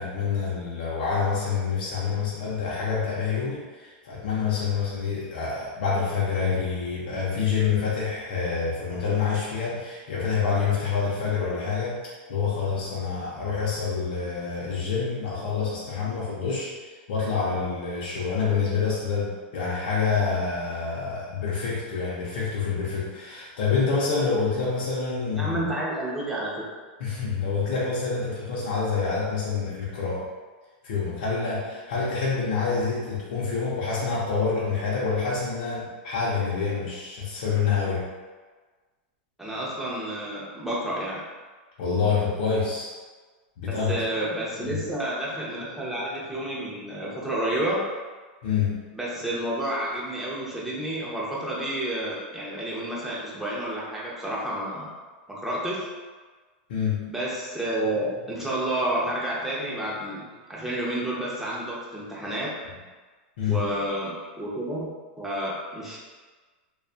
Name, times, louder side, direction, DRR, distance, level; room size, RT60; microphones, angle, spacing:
voice 1, 0.0-12.0 12.3-16.7 17.1-25.7 27.0-30.3 30.8-38.1 41.8-42.9 43.6-44.0 44.6-44.8 48.4-48.8 56.7-57.1 63.4-63.6, left 5 dB, 65° left, -6 dB, 0.6 m, -27 dB
voice 2, 25.3-26.7 39.4-41.2 43.6-47.8 48.9-54.9 55.3-55.9 57.1-60.2 60.5-62.5 63.5-64.9 65.2-66.0, right 1 dB, 5° right, -6 dB, 0.6 m, -30 dB
2.5 x 2.3 x 2.4 m, 1.4 s
supercardioid pair, 135°, 6 cm